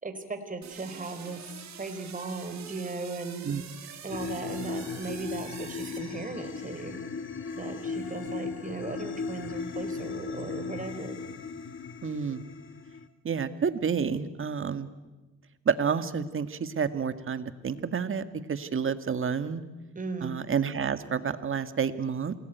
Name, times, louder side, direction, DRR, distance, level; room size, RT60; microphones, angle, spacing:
voice 1, 0.0-1.5 1.8-3.4 4.0-7.0 7.5-11.2 19.9-20.3, right 3 dB, 25° right, 7 dB, 4.5 m, -37 dB
sound 1, 0.6-6.8, right 8 dB, 65° right, 3.5 m, -46 dB
sound 2, 4.1-13.1, left 5 dB, 40° left, 1.9 m, -37 dB
sound 3, 6.3-13.0, left 6 dB, 85° left, 6.6 m, -53 dB
voice 2, 12.0-12.4 13.2-14.9 15.7-18.2 18.5-19.6 20.2-22.4, right 6 dB, 45° right, 11 dB, 1.9 m, -29 dB
28.0 x 20.0 x 9.3 m, 1.2 s
cardioid pair, 90°, 30 cm